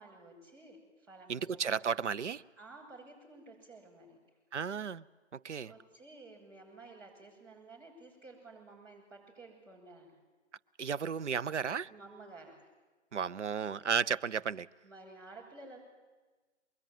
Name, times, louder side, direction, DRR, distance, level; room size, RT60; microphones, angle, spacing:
voice 1, 0.0-1.8 2.6-4.2 5.6-10.2 11.9-12.7 14.8-15.8, right 2 dB, 20° right, -7 dB, 7.8 m, -53 dB
voice 2, 1.3-2.4 4.5-5.0 5.3-5.7 10.8-11.9 13.1-14.7, right 6 dB, 70° right, 15 dB, 0.9 m, -33 dB
24.0 x 22.0 x 9.2 m, 1.3 s
hypercardioid pair, 175°, 36 cm